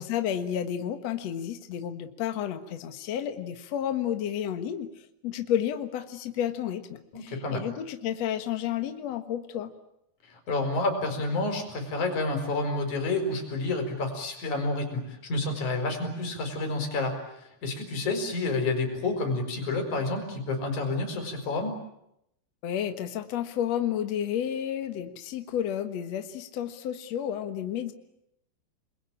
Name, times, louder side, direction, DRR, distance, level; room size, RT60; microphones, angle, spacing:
voice 1, 0.0-4.9 5.2-9.7 22.6-27.9, left 10 dB, 85° left, 7 dB, 1.4 m, -31 dB
voice 2, 7.1-7.6 10.3-21.7, left 2 dB, 40° left, 5 dB, 5.6 m, -29 dB
29.0 x 21.5 x 8.8 m, 0.81 s
omnidirectional pair, 5.5 m